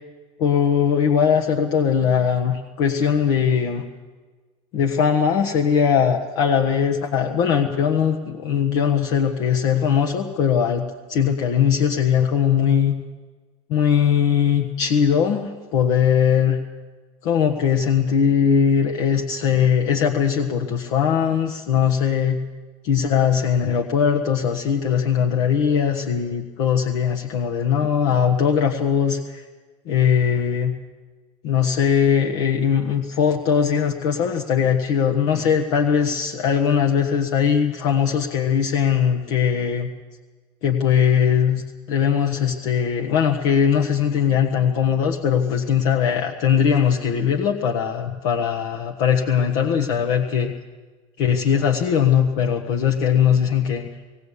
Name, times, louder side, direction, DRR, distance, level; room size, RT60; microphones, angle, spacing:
voice 1, 0.4-3.8 4.7-8.2 8.4-12.9 13.7-16.6 17.2-22.4 22.8-29.4 29.8-30.8 31.4-39.9 40.6-50.5 51.2-53.9, left 7 dB, 70° left, 2 dB, 1.4 m, -20 dB
18.5 x 17.5 x 8.4 m, 1.4 s
supercardioid pair, 130°, 15 cm